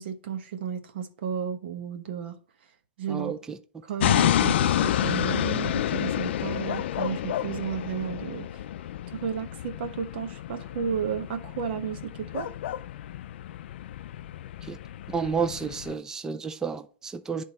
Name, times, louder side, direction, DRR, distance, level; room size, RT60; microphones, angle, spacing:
voice 1, 0.0-2.4 3.0-3.4 3.8-8.6 9.1-12.5, right 7 dB, 65° right, 1.1 m, -33 dB
sound 1, 4.0-15.9, left 11 dB, 75° left, 0.4 m, -29 dB
voice 2, 15.1-17.4, right 6 dB, 10° right, 0.4 m, -30 dB
10.0 x 3.7 x 4.1 m
supercardioid pair, 160°, 6 cm